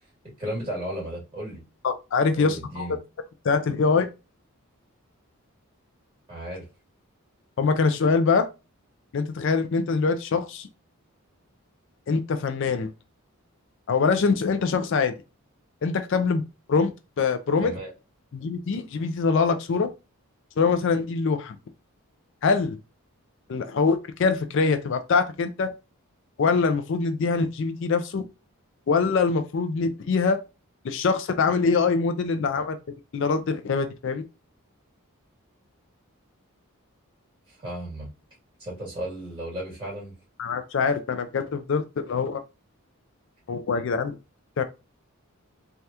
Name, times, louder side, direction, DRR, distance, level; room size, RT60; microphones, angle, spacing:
voice 1, 0.4-1.6 2.3-3.0 6.3-6.7 17.6-17.9 37.5-38.1 38.6-40.1, right 1 dB, 20° right, 1.8 m, -34 dB
voice 2, 1.8-2.9 3.4-4.1 7.6-8.5 9.1-10.7 12.1-12.9 13.9-15.1 15.8-16.4 16.7-16.9 17.2-17.7 18.3-19.9 20.6-21.6 22.4-22.8 23.5-25.7 26.4-28.2 28.9-30.4 30.8-32.8 33.1-34.2 40.4-42.4 43.5-44.1 44.6-44.7, left 4 dB, 55° left, 0.4 m, -24 dB
3.3 x 2.3 x 2.7 m
head